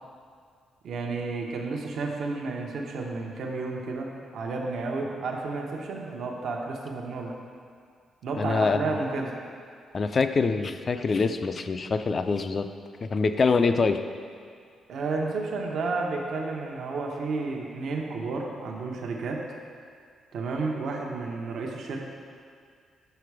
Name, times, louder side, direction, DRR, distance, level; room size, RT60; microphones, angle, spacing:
voice 1, 0.8-7.3 8.2-9.3 14.9-19.4 20.3-22.1, right 3 dB, 70° right, 0 dB, 0.9 m, -31 dB
voice 2, 8.4-9.0 9.9-12.7 13.0-14.0, left 4 dB, 40° left, 9 dB, 0.4 m, -25 dB
6.8 x 5.8 x 4.7 m, 2.2 s
cardioid pair, 95°, 0 cm